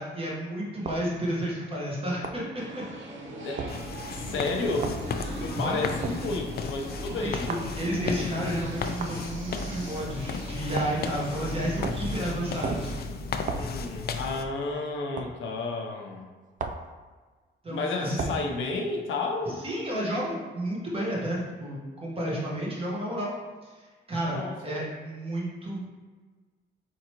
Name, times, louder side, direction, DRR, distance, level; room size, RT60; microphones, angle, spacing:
voice 1, 0.0-2.8 5.5-5.8 7.1-12.9 17.6-18.3 19.6-23.3 23.6-23.7 24.1-25.9, right 1 dB, 30° right, -5 dB, 1.4 m, -31 dB
sound 1, 0.8-1.1 2.2-2.5 3.6-3.8 4.8-5.0 6.0-6.2 7.5-7.7 9.0-9.2 10.7-11.0 11.8-12.1 12.6-12.9 13.5-13.7 15.2-15.3 16.6-16.9 18.2-18.4, right 4 dB, 45° right, 0.4 m, -33 dB
sound 2, 2.6-13.0, right 1 dB, 80° right, 0.7 m, -41 dB
sound 3, 3.7-14.4, left 4 dB, 55° left, 0.4 m, -34 dB
voice 2, 4.1-5.0 5.4-7.5 13.5-16.3 17.7-19.6 24.3-24.8, left 3 dB, 85° left, 1 dB, 0.8 m, -31 dB
4.6 x 3.8 x 3.0 m, 1.4 s
cardioid pair, 120°, 19 cm